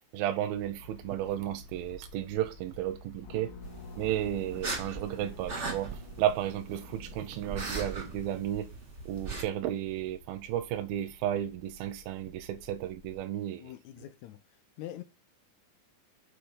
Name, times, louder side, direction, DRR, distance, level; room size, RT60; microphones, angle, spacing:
voice 1, 0.1-3.6 4.0-8.7 9.1-13.7, right 12 dB, 85° right, 2.5 m, -33 dB
sound 1, 0.5-13.2, left 2 dB, 45° left, 2.1 m, -52 dB
sound 2, 3.2-8.3, left 4 dB, 60° left, 3.4 m, -50 dB
sound 3, 3.6-9.4, right 4 dB, 35° right, 1.1 m, -40 dB
voice 2, 13.6-14.4 14.8-15.0, left 13 dB, 80° left, 1.7 m, -43 dB
7.7 x 4.9 x 7.0 m
omnidirectional pair, 4.2 m